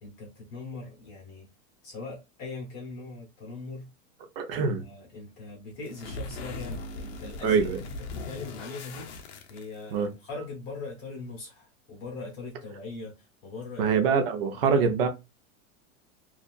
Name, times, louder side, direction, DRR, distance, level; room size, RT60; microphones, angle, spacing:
voice 1, 0.0-1.5 1.8-3.9 4.6-13.9 14.3-14.9, left 3 dB, 30° left, 0.9 m, -41 dB
voice 2, 4.4-4.8 7.4-7.8 9.9-10.1 13.8-15.1, right 6 dB, 45° right, 0.6 m, -24 dB
sound 1, 5.8-10.1, left 2 dB, 55° left, 0.6 m, -39 dB
2.7 x 2.4 x 2.3 m
supercardioid pair, 175°, 40 cm